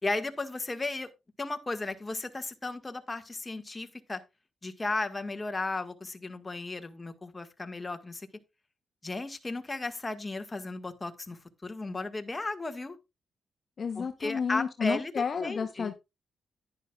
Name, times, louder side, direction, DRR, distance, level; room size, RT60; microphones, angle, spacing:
voice 1, 0.0-1.1 1.4-4.2 4.6-8.3 9.0-13.0 13.9-15.1 15.4-15.9, left 2 dB, 25° left, 1.7 m, -35 dB
voice 2, 13.8-15.9, left 6 dB, 55° left, 0.9 m, -31 dB
10.5 x 10.5 x 2.4 m
cardioid pair, 75°, 0 cm